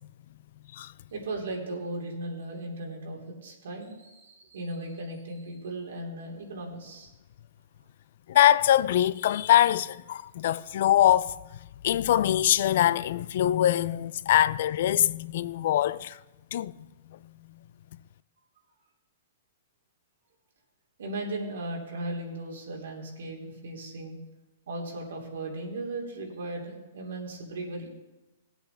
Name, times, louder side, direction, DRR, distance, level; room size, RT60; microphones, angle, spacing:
voice 1, 1.1-7.1 21.0-24.2 24.7-27.9, right 2 dB, 80° right, 2.7 m, -37 dB
voice 2, 8.3-11.3 11.8-16.2 16.5-16.7, left 12 dB, 55° left, 0.3 m, -23 dB
18.0 x 8.1 x 3.4 m
hypercardioid pair, 165°, 0 cm